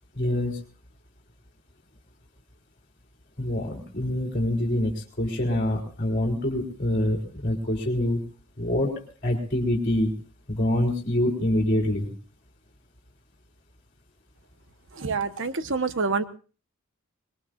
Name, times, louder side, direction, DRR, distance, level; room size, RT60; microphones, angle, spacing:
voice 1, 0.1-0.6 3.4-8.3 8.6-10.2 10.5-12.1, left 1 dB, 35° left, -1 dB, 3.9 m, -25 dB
voice 2, 15.0-16.2, right 4 dB, 60° right, 10 dB, 1.3 m, -27 dB
25.5 x 21.0 x 2.6 m, 0.38 s
head